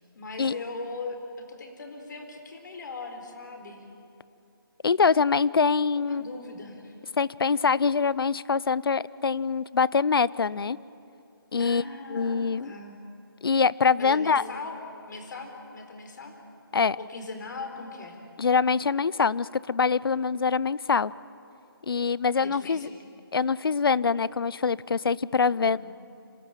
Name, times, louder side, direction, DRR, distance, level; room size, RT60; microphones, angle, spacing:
voice 1, 0.1-3.9 6.0-6.9 11.6-13.0 14.0-14.8 15.1-16.3 17.0-18.2 21.9-22.1 22.4-23.0 25.6-25.8, left 3 dB, 50° left, 4 dB, 4.2 m, -39 dB
voice 2, 4.8-6.2 7.2-10.8 11.5-11.8 12.1-12.7 13.4-14.4 16.7-17.0 18.4-21.1 21.8-22.9 23.3-25.8, left 5 dB, 70° left, 21 dB, 0.6 m, -24 dB
26.5 x 18.5 x 9.0 m, 2.7 s
figure-of-eight pair, 155°, 12 cm